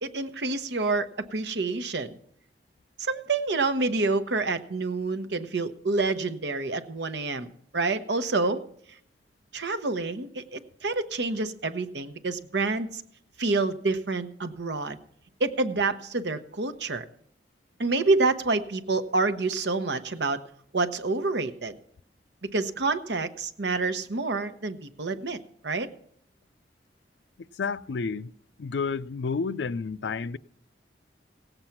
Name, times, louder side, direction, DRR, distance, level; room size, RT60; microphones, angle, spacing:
voice 1, 0.0-2.2 3.0-8.6 9.5-13.0 13.4-15.0 15.4-17.0 17.8-20.4 20.7-21.8 22.4-25.9, right 3 dB, 75° right, 0.9 m, -28 dB
voice 2, 27.6-28.3 28.6-30.4, left 5 dB, 80° left, 0.5 m, -30 dB
17.0 x 7.9 x 5.9 m
head